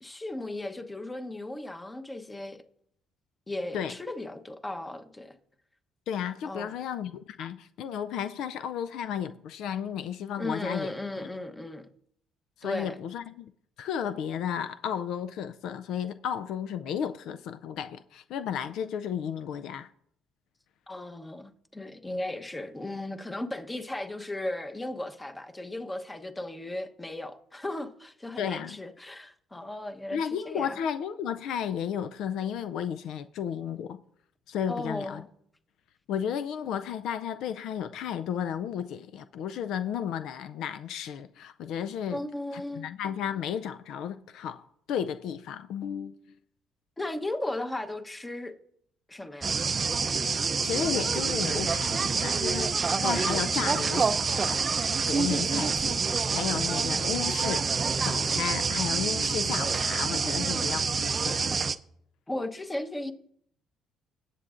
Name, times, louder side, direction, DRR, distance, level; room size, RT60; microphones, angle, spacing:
voice 1, 0.0-2.6 3.5-5.4 6.4-6.7 10.4-11.9 12.6-13.0 20.9-30.8 34.7-35.3 42.1-42.9 47.0-48.5 49.1-49.6 55.6-55.9 62.3-63.1, left 1 dB, 15° left, 1.0 m, -36 dB
voice 2, 6.1-10.9 12.6-13.5 13.8-19.9 28.4-28.8 30.1-34.0 34.5-35.2 36.1-42.2 42.5-46.2 50.6-56.0 56.3-57.7 58.0-61.5, left 8 dB, 75° left, 0.4 m, -33 dB
sound 1, 49.4-61.8, right 5 dB, 35° right, 0.5 m, -27 dB
18.0 x 8.1 x 2.5 m
cardioid pair, 90°, 0 cm